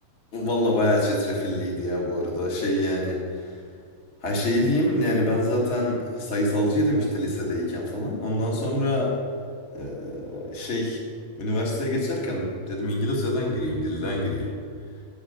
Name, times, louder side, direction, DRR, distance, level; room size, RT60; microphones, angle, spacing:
voice 1, 0.3-3.4 4.2-9.1 9.7-11.0 11.3-14.5, left 1 dB, 30° left, -2 dB, 1.2 m, -25 dB
11.5 x 5.1 x 6.6 m, 2.1 s
omnidirectional pair, 3.9 m